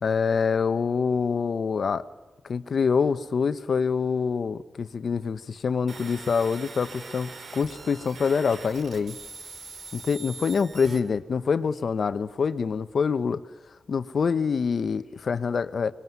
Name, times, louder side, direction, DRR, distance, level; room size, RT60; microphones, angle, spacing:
voice 1, 0.0-2.0 2.4-9.2 9.9-13.4 13.9-15.9, left 5 dB, 65° left, 12 dB, 1.1 m, -25 dB
sound 1, 5.9-11.0, right 4 dB, 85° right, 2.8 m, -42 dB
24.5 x 21.5 x 9.5 m, 1.1 s
cardioid pair, 75°, 0 cm